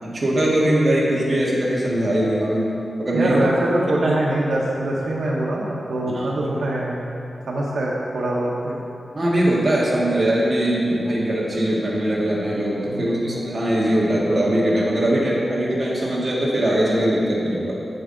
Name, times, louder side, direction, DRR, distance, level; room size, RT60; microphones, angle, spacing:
voice 1, 0.0-2.7 3.0-3.3 4.0-4.1 6.1-6.3 9.1-17.7, right 1 dB, 35° right, -6 dB, 1.6 m, -21 dB
voice 2, 3.1-7.1 7.5-8.8 12.9-13.4, right 1 dB, 85° right, -3 dB, 0.9 m, -23 dB
7.9 x 7.0 x 3.9 m, 2.8 s
wide cardioid pair, 155°, 0 cm